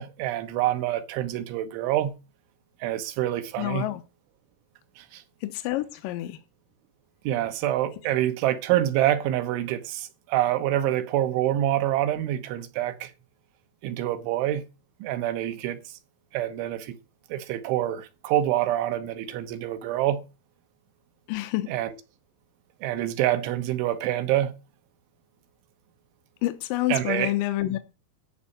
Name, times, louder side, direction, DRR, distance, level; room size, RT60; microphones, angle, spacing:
voice 1, 0.0-2.2 2.8-3.9 5.0-5.2 7.3-13.1 13.8-14.7 15.0-16.0 16.3-17.0 17.3-20.2 21.7-21.9 22.8-24.5 26.9-27.3, right 13 dB, 85° right, 3.6 m, -26 dB
voice 2, 3.6-4.0 5.4-6.4 21.3-21.7 26.4-27.8, left 15 dB, 80° left, 2.0 m, -28 dB
14.0 x 5.5 x 8.7 m
omnidirectional pair, 5.3 m